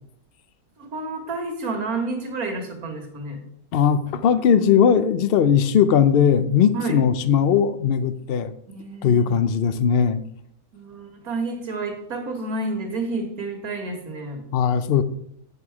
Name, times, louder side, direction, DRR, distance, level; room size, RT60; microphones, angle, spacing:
voice 1, 0.8-3.4 6.7-7.0 8.7-9.4 10.7-14.4, right 3 dB, 70° right, 3 dB, 2.1 m, -30 dB
voice 2, 3.7-8.5 9.0-10.2 14.5-15.0, left 7 dB, 70° left, 13 dB, 0.5 m, -19 dB
8.7 x 6.9 x 4.7 m, 0.73 s
omnidirectional pair, 1.6 m